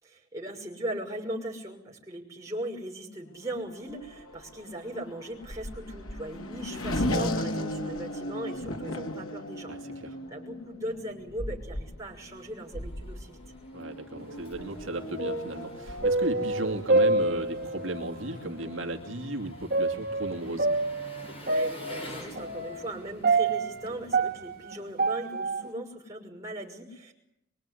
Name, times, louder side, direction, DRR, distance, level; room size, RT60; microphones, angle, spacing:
voice 1, 0.0-9.7 10.0-13.4 21.4-27.1, right 1 dB, 15° right, 0 dB, 6.0 m, -38 dB
Race car auto racing / Accelerating revving vroom, 3.5-19.7, left 1 dB, 90° left, 2.9 m, -37 dB
voice 2, 9.7-10.1 13.7-20.7, right 2 dB, 70° right, 2 dB, 2.6 m, -35 dB
Engine, 11.6-25.2, left 1 dB, 30° left, 6.2 m, -50 dB
sound 1, 14.2-14.8 15.0-17.9 18.6-18.7 19.7-25.7, right 3 dB, 50° right, 2.3 m, -27 dB
24.0 x 24.0 x 9.9 m, 0.81 s
head